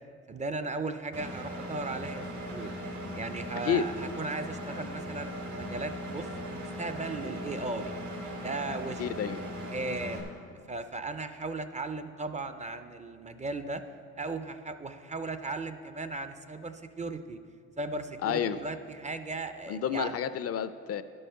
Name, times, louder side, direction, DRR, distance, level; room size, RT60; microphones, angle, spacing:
voice 1, 0.3-2.2 2.5-2.7 3.1-7.9 8.3-9.0 9.7-10.4 10.7-13.8 14.2-17.4 17.8-20.2, right 3 dB, 25° right, 10 dB, 0.5 m, -37 dB
Engine, 1.1-10.2, equal, 75° right, 2.0 m, -38 dB
voice 2, 9.0-9.4 18.2-18.6 19.7-21.0, left 8 dB, 50° left, 13 dB, 0.4 m, -30 dB
10.5 x 5.5 x 5.6 m, 2.3 s
cardioid pair, 90°, 30 cm